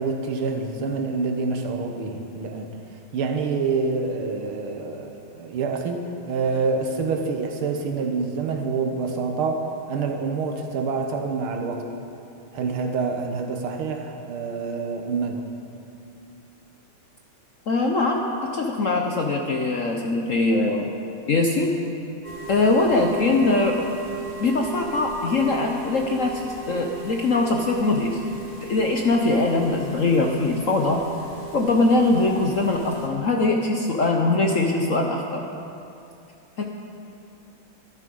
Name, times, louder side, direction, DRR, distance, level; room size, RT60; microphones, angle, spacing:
voice 1, 0.0-2.7 3.1-6.0 6.3-11.8 12.5-15.4, right 4 dB, 85° right, 4 dB, 2.0 m, -27 dB
voice 2, 17.7-18.2 18.5-20.9 21.3-21.7 22.5-23.8 24.4-26.4 26.7-28.2 28.6-31.0 31.5-35.4 36.6-36.7, left 2 dB, 55° left, 2 dB, 0.9 m, -22 dB
sound 1, 22.2-33.1, right 4 dB, 30° left, 1.9 m, -37 dB
12.5 x 12.0 x 5.4 m, 2.6 s
omnidirectional pair, 2.3 m